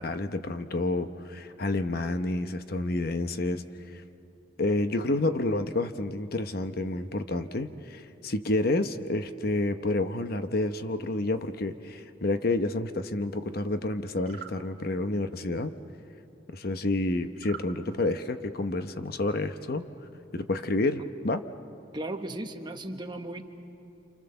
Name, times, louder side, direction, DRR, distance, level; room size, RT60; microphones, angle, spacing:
voice 1, 0.0-4.0 4.6-15.7 16.5-19.9 20.3-21.4, left 2 dB, 50° left, 9 dB, 0.9 m, -29 dB
sound 1, 14.2-14.6 17.4-17.7, right 8 dB, 45° right, 1.7 m, -42 dB
voice 2, 21.9-23.4, right 1 dB, 25° right, 5 dB, 1.2 m, -36 dB
28.0 x 27.0 x 6.9 m, 2.8 s
head